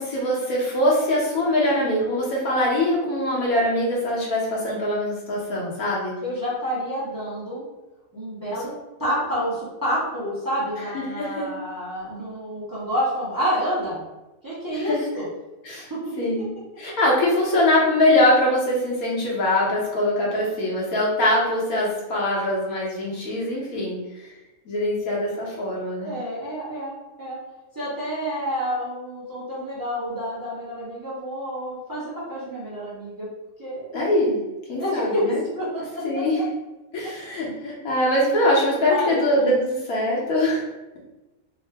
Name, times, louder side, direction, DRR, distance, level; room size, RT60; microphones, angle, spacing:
voice 1, 0.0-6.1 10.9-11.5 14.7-15.0 15.6-15.9 16.2-16.5 16.8-24.3 24.7-26.1 33.9-34.4 34.7-35.4 36.0-36.4 36.9-40.7, left 1 dB, 80° left, -4 dB, 1.4 m, -23 dB
voice 2, 6.2-7.6 8.1-8.7 9.0-14.0 14.4-15.3 15.9-16.0 20.4-20.5 26.0-27.4 27.7-33.3 33.6-33.9 34.8-36.2 37.0-37.1 38.9-39.3, equal, 15° right, -8 dB, 0.8 m, -28 dB
3.6 x 2.1 x 3.3 m, 1.1 s
omnidirectional pair, 1.5 m